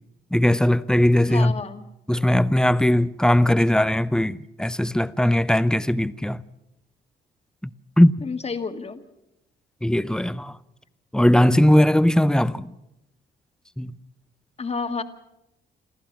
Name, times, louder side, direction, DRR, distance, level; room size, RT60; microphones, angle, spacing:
voice 1, 0.3-1.6 2.1-6.4 7.6-7.7 8.0-8.1 9.8-10.5 11.1-12.7 13.8-13.9, left 1 dB, 5° left, 0.7 m, -19 dB
voice 2, 1.3-1.8 8.2-9.0 14.6-15.0, left 4 dB, 30° left, 1.8 m, -30 dB
27.5 x 14.0 x 7.3 m
cardioid pair, 90°, 20 cm